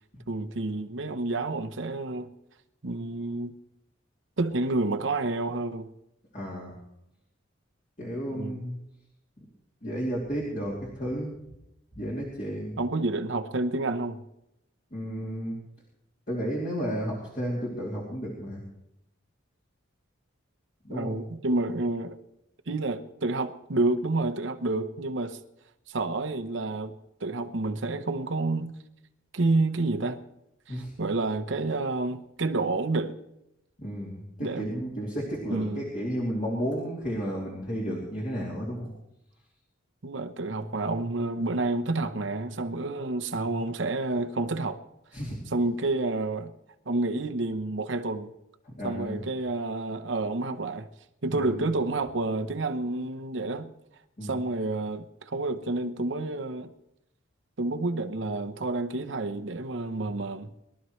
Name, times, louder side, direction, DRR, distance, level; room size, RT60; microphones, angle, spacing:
voice 1, 0.3-2.3 2.8-3.5 4.4-5.9 8.3-8.6 12.8-14.2 20.9-22.2 22.7-25.4 25.9-28.7 29.3-30.2 30.7-33.1 34.4-34.7 35.5-35.9 40.0-44.8 45.5-46.5 46.9-48.3 48.8-50.9 51.2-53.7 54.2-56.7 57.6-60.5, right 2 dB, 65° right, 0.8 m, -29 dB
voice 2, 6.3-6.7 8.0-8.8 9.8-11.3 12.0-12.8 14.9-15.6 16.3-18.6 20.8-21.2 30.7-30.9 33.8-38.9 45.1-45.4 48.6-49.2 51.3-51.6 54.2-54.4, equal, 40° left, 2.9 m, -32 dB
22.0 x 12.5 x 3.2 m
head